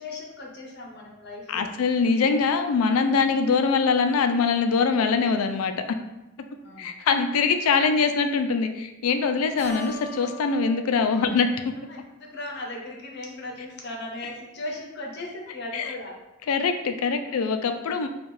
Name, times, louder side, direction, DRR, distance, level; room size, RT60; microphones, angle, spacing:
voice 1, 0.0-1.7 6.6-6.9 11.9-12.0 12.3-16.2 17.2-17.4, left 2 dB, 50° left, 0 dB, 0.7 m, -37 dB
voice 2, 1.5-5.7 6.8-11.5 15.7-15.9 16.5-18.1, left 5 dB, 85° left, 7 dB, 0.4 m, -23 dB
Keyboard (musical), 9.6-12.5, right 2 dB, 5° left, 0.7 m, -41 dB
4.3 x 2.3 x 3.1 m, 0.99 s
head